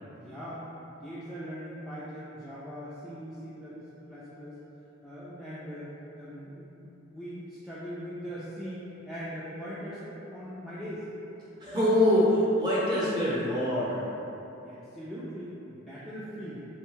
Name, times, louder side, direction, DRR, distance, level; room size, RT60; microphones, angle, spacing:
voice 1, 0.1-0.6 1.0-3.8 4.1-4.6 5.0-5.9 6.1-11.1 14.6-16.7, equal, ahead, -12 dB, 0.3 m, -40 dB
voice 2, 11.6-14.0, left 1 dB, 20° right, -9 dB, 0.7 m, -24 dB
3.4 x 2.2 x 3.0 m, 3.0 s
head